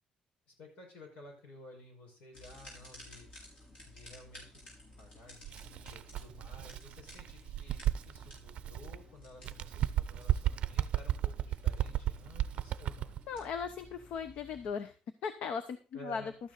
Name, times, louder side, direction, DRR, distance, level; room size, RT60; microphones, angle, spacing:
voice 1, 0.5-3.3 3.9-4.6 5.0-13.2 15.9-16.3, left 1 dB, 80° left, 1 dB, 5.4 m, -53 dB
sound 1, 2.3-14.7, left 1 dB, 45° left, 5.2 m, -55 dB
Bird, 5.4-9.0 9.4-13.2, right 12 dB, 55° right, 0.5 m, -34 dB
voice 2, 13.3-14.9 15.2-16.3, left 6 dB, 65° left, 11 dB, 0.8 m, -38 dB
12.5 x 9.3 x 4.0 m, 0.34 s
cardioid pair, 175°, 2 cm